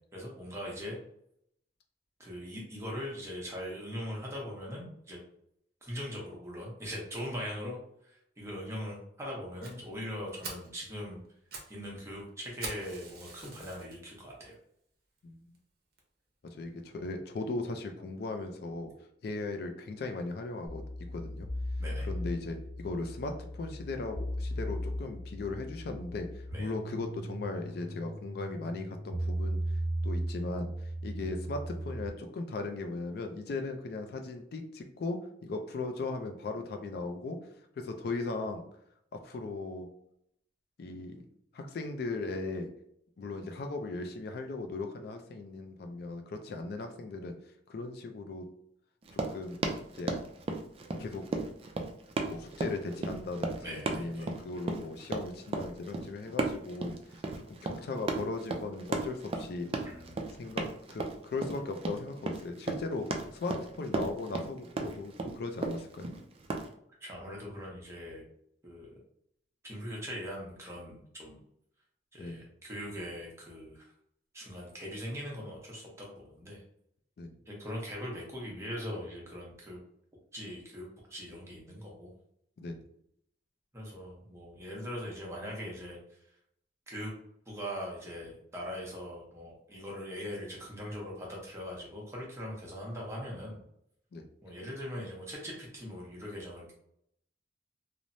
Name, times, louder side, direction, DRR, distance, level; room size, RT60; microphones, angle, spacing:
voice 1, 0.1-1.0 2.2-5.2 5.8-7.8 8.0-11.2 11.7-14.5 21.8-22.1 26.5-26.7 53.6-54.3 59.8-60.3 67.0-68.2 68.6-68.9 69.6-71.4 72.1-73.9 74.3-76.6 77.5-79.8 80.3-82.1 83.7-86.0 86.9-87.1 87.5-93.6 94.4-96.7, equal, 15° right, -3 dB, 0.8 m, -41 dB
Fire, 9.6-9.7 10.1-10.2 10.4-10.7 11.2-11.7 12.0-12.1 12.6-13.9 14.5-14.6 15.2-15.3 15.5-15.6 16.0-16.1, right 3 dB, 60° right, 0.7 m, -43 dB
voice 2, 16.4-18.9 19.2-20.8 21.1-21.5 22.0-29.6 30.0-37.4 37.8-38.6 39.1-39.9 40.8-41.2 41.5-42.7 43.2-47.3 47.7-48.5 49.1-49.6 49.9-50.2 51.0-51.2 52.3-56.9 57.5-59.7 60.3-66.1 72.2-72.5 77.2-77.4 82.6-82.8 94.1-94.2, left 3 dB, 60° left, 5 dB, 0.4 m, -38 dB
sound 1, 20.7-32.1, equal, 40° left, 1.0 m, -37 dB
Run, 49.0-66.7, right 3 dB, 30° right, 0.3 m, -35 dB
3.0 x 2.0 x 2.6 m, 0.72 s
head